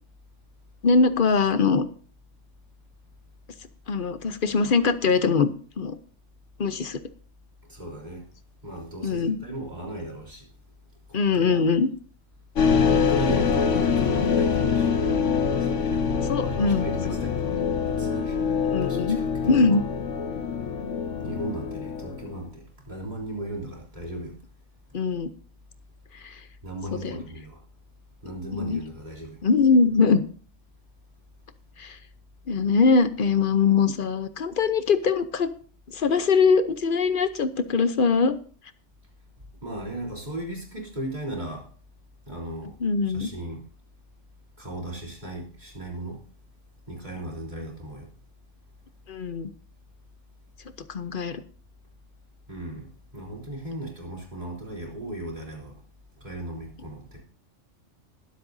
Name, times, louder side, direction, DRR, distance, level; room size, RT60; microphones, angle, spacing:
voice 1, 0.8-1.8 3.9-5.5 5.8-6.0 6.6-7.0 9.0-9.4 11.1-11.9 16.3-16.9 18.6-19.2 19.4-19.8 24.9-25.3 26.1-26.4 26.9-27.2 28.5-28.8 29.4-30.2 31.8-32.0 32.5-35.5 35.9-38.3 42.8-43.3 49.1-49.5 50.9-51.4, left 4 dB, 50° left, 11 dB, 1.0 m, -22 dB
voice 2, 7.6-8.3 8.6-10.5 11.1-11.6 12.9-15.0 15.5-18.6 18.8-19.8 21.2-24.4 26.6-27.6 28.2-29.4 39.6-41.7 42.3-42.8 43.0-43.6 44.6-46.2 46.9-48.1 52.5-55.8 56.1-57.2, right 1 dB, 35° right, -2 dB, 3.8 m, -37 dB
sound 1, 12.6-22.3, left 6 dB, 80° left, 1.5 m, -25 dB
21.5 x 7.7 x 2.7 m, 0.42 s
omnidirectional pair, 1.2 m